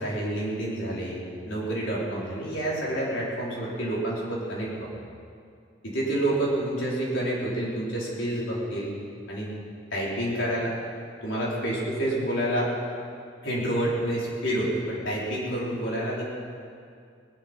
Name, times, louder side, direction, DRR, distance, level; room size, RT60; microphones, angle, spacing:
voice 1, 0.0-4.9 5.8-8.9 9.3-9.5 9.9-10.7 11.2-12.7 13.4-16.2, right 1 dB, 75° left, -6 dB, 4.7 m, -28 dB
20.0 x 11.0 x 5.5 m, 2.3 s
head